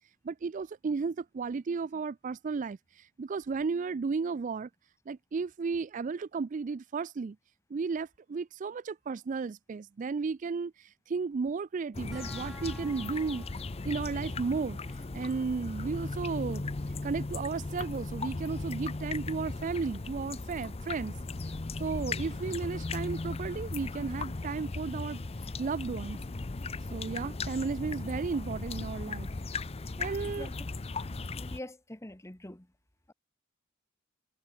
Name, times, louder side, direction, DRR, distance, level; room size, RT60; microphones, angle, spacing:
voice 1, 0.2-4.7 5.1-7.4 7.7-13.4 13.8-14.8 15.1-16.7 17.0-21.2 21.8-25.2 25.6-26.2 26.9-29.3 30.0-30.5, right 4 dB, 40° right, 0.4 m, -34 dB
sound 1, 11.9-31.6, left 3 dB, 30° left, 0.6 m, -37 dB
sound 2, 12.1-23.1, equal, ahead, 4.5 m, -58 dB
voice 2, 31.3-32.7, left 1 dB, 15° left, 1.3 m, -44 dB
head